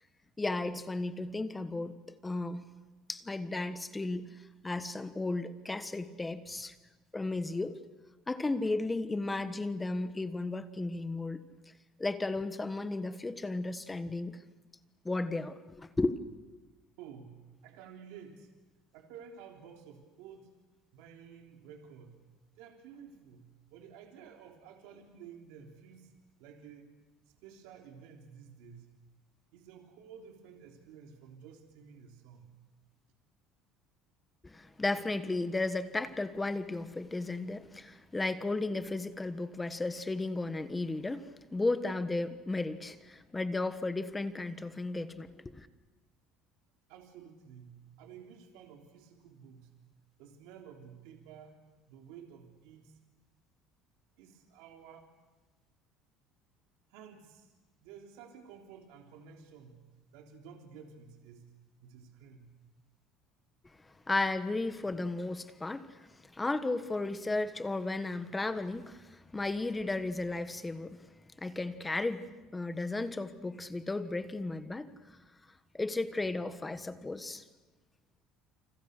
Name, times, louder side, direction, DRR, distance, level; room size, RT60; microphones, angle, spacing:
voice 1, 0.4-2.0 2.2-2.6 3.1-4.3 4.6-6.7 7.1-7.8 8.3-11.4 12.0-14.4 15.0-16.2 34.4-45.7 64.1-66.1 66.3-71.0 71.4-72.3 72.5-75.2 75.7-77.4, left 2 dB, 10° left, 1.4 m, -34 dB
voice 2, 17.0-18.5 18.9-20.5 20.9-22.2 22.6-26.1 26.4-26.9 27.4-28.9 29.5-32.5 46.9-49.8 50.2-51.6 51.9-53.0 54.2-55.1 56.9-57.5 57.8-59.9 60.1-61.5 61.8-62.6, right 7 dB, 85° right, 3.5 m, -52 dB
29.5 x 28.0 x 6.7 m
cardioid pair, 150°, 0 cm